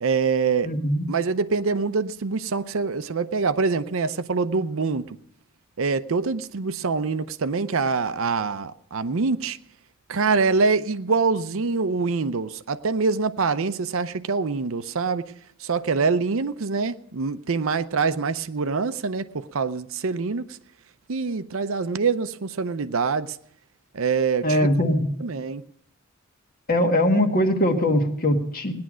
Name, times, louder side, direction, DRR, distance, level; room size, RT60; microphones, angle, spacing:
voice 1, 0.0-0.7 1.1-5.2 5.8-9.6 10.1-15.3 15.6-20.6 21.1-23.4 23.9-24.6 25.2-25.6, right 4 dB, 65° right, 0.6 m, -25 dB
voice 2, 0.6-1.1 24.4-25.1 26.7-28.8, left 1 dB, 45° left, 1.5 m, -21 dB
18.0 x 10.5 x 6.2 m
head